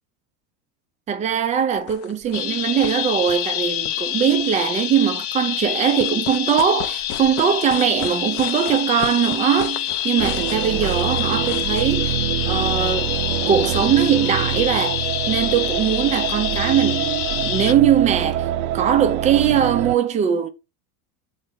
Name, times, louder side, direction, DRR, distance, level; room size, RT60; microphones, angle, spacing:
voice 1, 1.1-13.1 13.5-18.5 18.7-20.5, right 8 dB, 15° right, 0.4 m, -21 dB
sound 1, 1.8-2.5 2.8-3.0 3.2-4.6 5.8-11.8, left 8 dB, 30° left, 0.6 m, -36 dB
sound 2, 2.3-17.7, left 12 dB, 90° left, 0.8 m, -26 dB
sound 3, 10.2-20.0, right 11 dB, 75° right, 0.6 m, -25 dB
6.7 x 4.1 x 3.5 m
supercardioid pair, 155°, 44 cm